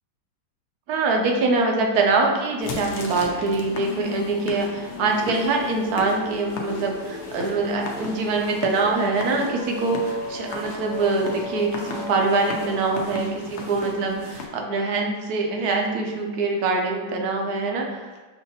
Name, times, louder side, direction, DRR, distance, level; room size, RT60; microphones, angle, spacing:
voice 1, 0.9-18.1, right 3 dB, 70° right, 1 dB, 1.1 m, -24 dB
sound 1, 2.6-14.5, left 4 dB, 65° left, 0.7 m, -36 dB
sound 2, 2.7-13.1, left 3 dB, 85° left, 1.3 m, -37 dB
6.5 x 2.6 x 2.7 m, 1.3 s
omnidirectional pair, 1.8 m